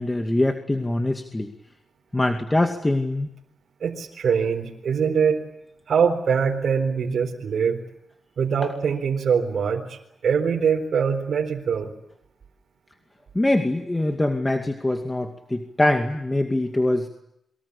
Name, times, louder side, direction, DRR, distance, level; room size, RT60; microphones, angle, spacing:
voice 1, 0.0-1.5 2.1-3.3 13.4-17.1, left 1 dB, 20° left, 5 dB, 2.3 m, -23 dB
voice 2, 3.8-5.4 5.9-7.8 8.4-11.9, right 6 dB, 75° right, 1 dB, 4.3 m, -23 dB
28.5 x 24.5 x 8.4 m, 0.79 s
cardioid pair, 75°, 0 cm